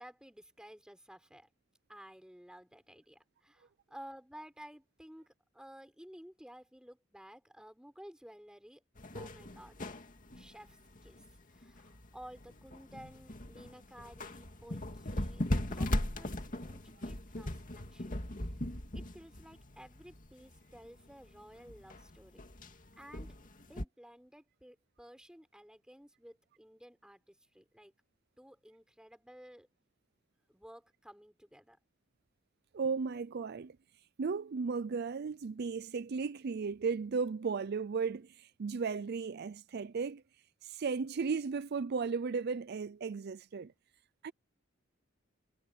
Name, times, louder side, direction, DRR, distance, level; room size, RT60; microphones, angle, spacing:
voice 1, 0.0-1.5 1.9-8.8 9.1-9.9 10.3-18.1 18.6-22.4 23.0-27.9 28.4-29.7 30.5-31.8, equal, 5° right, 4.7 m, -54 dB
sound 1, 9.0-23.8, left 1 dB, 40° left, 2.4 m, -39 dB
voice 2, 32.7-33.8 34.2-40.2 40.6-43.7 44.2-44.3, right 5 dB, 55° right, 0.4 m, -35 dB
head